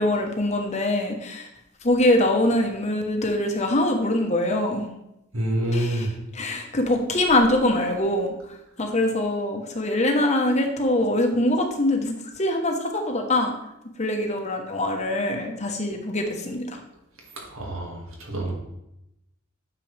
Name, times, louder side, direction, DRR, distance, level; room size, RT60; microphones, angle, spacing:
voice 1, 0.0-1.5 1.8-4.8 5.7-8.3 8.8-13.5 14.0-16.8, left 1 dB, 30° left, 3 dB, 1.1 m, -23 dB
voice 2, 5.3-6.1 17.5-18.5, right 1 dB, 70° right, -1 dB, 2.2 m, -27 dB
8.8 x 6.8 x 3.4 m, 0.86 s
head